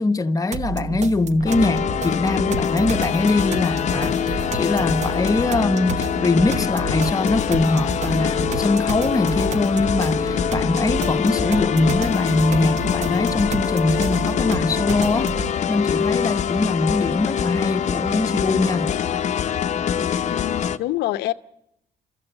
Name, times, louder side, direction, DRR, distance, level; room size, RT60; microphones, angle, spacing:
voice 1, 0.0-15.3 15.7-18.9, left 2 dB, 20° left, 1.0 m, -22 dB
sound 1, 0.5-15.5, right 5 dB, 45° right, 1.0 m, -31 dB
sound 2, 1.5-20.8, left 8 dB, 45° left, 0.8 m, -24 dB
voice 2, 20.3-21.3, left 15 dB, 80° left, 0.8 m, -26 dB
29.5 x 13.5 x 9.0 m
cardioid pair, 110°, 17 cm